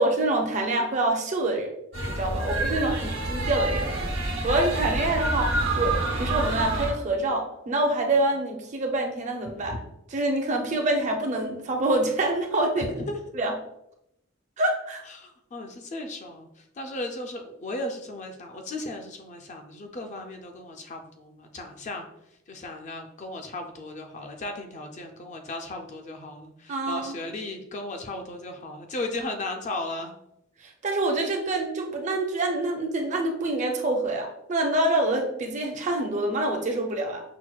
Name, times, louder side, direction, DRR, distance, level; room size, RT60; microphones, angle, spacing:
voice 1, 0.0-1.7 2.1-9.7 10.1-12.9 13.4-13.5 14.6-15.0 26.7-27.2 30.6-37.2, right 2 dB, 35° right, 3 dB, 0.5 m, -26 dB
sound 1, 1.9-6.9, right 2 dB, 85° right, 0.9 m, -27 dB
voice 2, 12.8-13.2 15.0-22.1 22.5-30.1, left 2 dB, 35° left, 4 dB, 0.4 m, -36 dB
5.7 x 2.2 x 2.3 m, 0.81 s
head